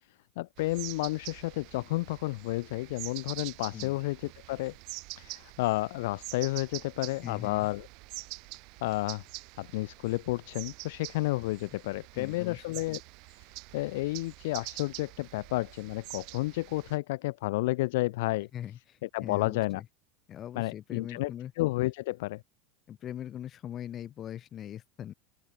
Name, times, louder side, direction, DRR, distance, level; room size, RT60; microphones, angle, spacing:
voice 1, 0.4-4.7 5.2-7.9 8.8-9.2 9.6-13.0 13.7-18.5 19.0-19.8 20.5-22.4, left 20 dB, 65° left, 0.6 m, -31 dB
sound 1, 0.6-17.0, right 27 dB, 55° right, 5.8 m, -45 dB
voice 2, 7.2-7.7 12.1-12.8 18.5-19.9 20.3-21.5 22.9-25.1, left 10 dB, 40° left, 7.5 m, -41 dB
open air
hypercardioid pair, 85°, 0 cm